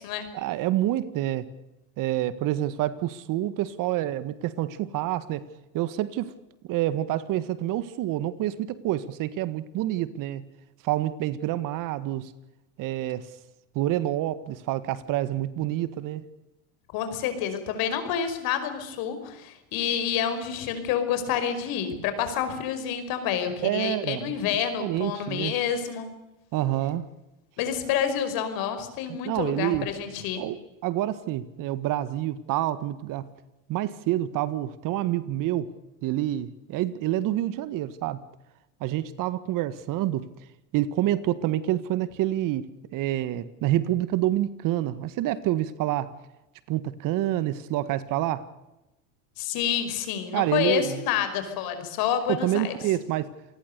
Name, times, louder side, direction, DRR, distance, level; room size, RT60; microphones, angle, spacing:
voice 1, 0.3-1.5 2.0-5.5 5.7-6.3 6.7-10.5 10.8-12.3 12.8-13.3 13.8-16.2 23.6-24.3 24.8-25.5 26.5-27.1 29.1-29.9 30.4-33.3 33.7-35.7 36.0-38.2 38.8-40.3 40.7-46.1 46.7-48.5 50.3-51.0 52.3-53.3, right 13 dB, 50° right, 1.7 m, -27 dB
voice 2, 16.9-26.1 27.6-30.4 49.4-52.7, left 9 dB, 55° left, 5.4 m, -28 dB
27.5 x 19.5 x 6.8 m
supercardioid pair, 115°, 43 cm